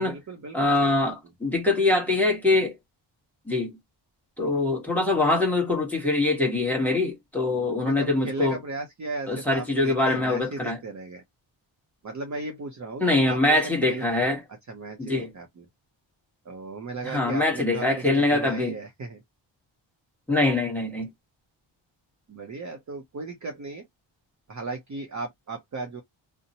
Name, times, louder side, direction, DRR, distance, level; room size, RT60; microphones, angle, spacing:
voice 1, 0.0-1.1 7.8-11.2 12.0-14.1 14.7-15.7 16.4-19.2 22.3-23.9 24.5-26.0, right 3 dB, 35° right, 0.6 m, -36 dB
voice 2, 0.5-2.7 3.5-3.8 4.4-8.6 9.3-10.8 13.0-14.4 15.0-15.3 17.0-18.7 20.3-21.1, left 2 dB, 5° left, 1.1 m, -23 dB
2.8 x 2.1 x 2.7 m
wide cardioid pair, 145°, 49 cm